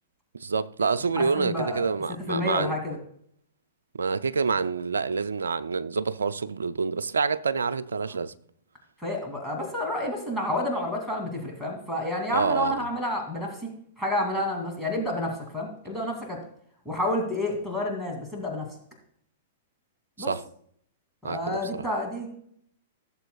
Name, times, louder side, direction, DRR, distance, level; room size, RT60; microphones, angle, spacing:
voice 1, 0.3-2.7 4.0-8.3 12.3-12.9 20.3-20.4 21.2-21.8, right 5 dB, 80° right, 0.5 m, -27 dB
voice 2, 1.2-1.8 2.3-3.0 9.0-13.6 14.0-16.4 16.8-18.7 20.2-20.3 21.2-22.3, left 1 dB, ahead, 2.6 m, -29 dB
17.0 x 7.1 x 2.3 m
hypercardioid pair, 110°, 0 cm